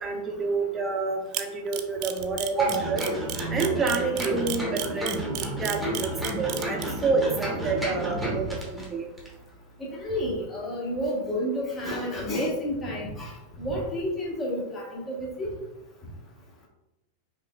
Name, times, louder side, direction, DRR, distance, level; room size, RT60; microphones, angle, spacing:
voice 1, 0.0-3.1 3.5-9.1, right 4 dB, 20° right, 2 dB, 0.7 m, -28 dB
Camera, 1.3-6.8, right 13 dB, 40° right, 0.3 m, -32 dB
sound 1, 2.6-8.9 9.2-9.3, right 1 dB, ahead, 1.2 m, -31 dB
voice 2, 9.9-13.3 13.6-15.5, equal, 20° left, -3 dB, 1.1 m, -30 dB
5.2 x 3.0 x 2.3 m, 0.97 s
figure-of-eight pair, 90°, 0 cm